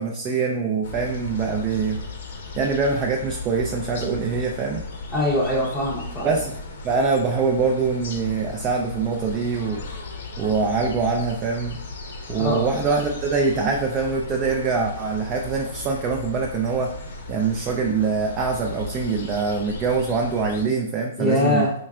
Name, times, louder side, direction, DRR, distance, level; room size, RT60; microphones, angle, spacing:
voice 1, 0.0-2.0 2.6-4.8 6.2-6.6 6.8-9.8 10.4-11.8 12.3-16.9 17.3-21.7, right 4 dB, 20° right, 0 dB, 0.4 m, -24 dB
sound 1, 0.8-20.6, left 3 dB, 65° left, 0.8 m, -36 dB
voice 2, 5.1-6.3 12.4-12.6 21.2-21.7, left 1 dB, 15° left, -6 dB, 0.7 m, -22 dB
4.7 x 3.2 x 2.3 m, 0.67 s
hypercardioid pair, 160°, 0 cm